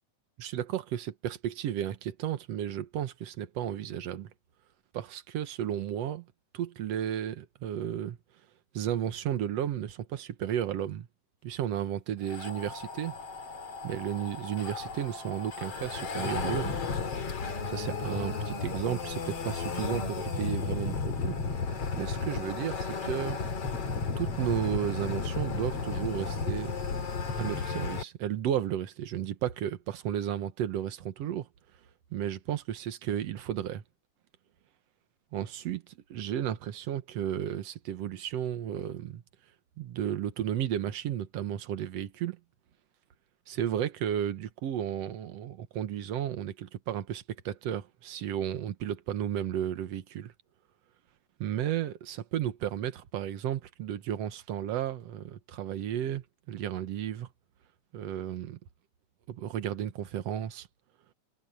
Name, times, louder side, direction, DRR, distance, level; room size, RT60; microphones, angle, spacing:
voice 1, 0.4-4.3 4.9-6.3 6.5-8.2 8.7-11.1 11.4-13.2 13.8-16.8 17.7-21.4 21.6-23.4 24.2-26.8 27.3-31.5 32.1-33.8 35.3-39.2 39.8-42.4 43.5-50.3 51.4-57.3 57.9-58.6 59.3-60.7, right 10 dB, 60° right, 2.1 m, -33 dB
sound 1, 12.2-28.0, left 4 dB, 50° left, 3.4 m, -34 dB
omnidirectional pair, 3.6 m